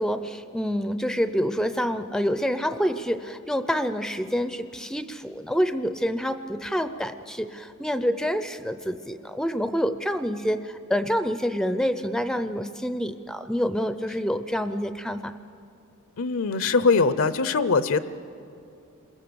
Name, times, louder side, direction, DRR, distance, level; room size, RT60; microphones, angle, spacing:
voice 1, 0.0-15.3, equal, 5° left, 10 dB, 0.5 m, -27 dB
voice 2, 16.2-18.0, left 4 dB, 65° left, 13 dB, 0.7 m, -22 dB
28.0 x 22.0 x 7.0 m, 2.6 s
head